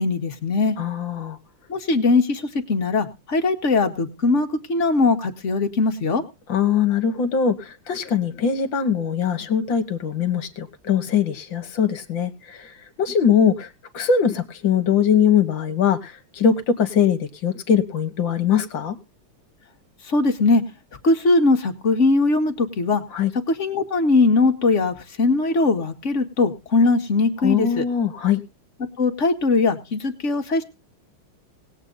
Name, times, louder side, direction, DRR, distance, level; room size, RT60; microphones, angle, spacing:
voice 1, 0.0-0.8 1.7-6.2 20.0-20.6 21.0-23.0 23.5-27.9 29.0-30.6, left 3 dB, 35° left, 6 dB, 1.9 m, -20 dB
voice 2, 0.8-1.4 6.5-13.7 13.9-19.0 23.1-23.3 27.4-28.4, left 7 dB, 60° left, 12 dB, 2.1 m, -21 dB
19.5 x 8.4 x 3.9 m, 0.29 s
omnidirectional pair, 2.4 m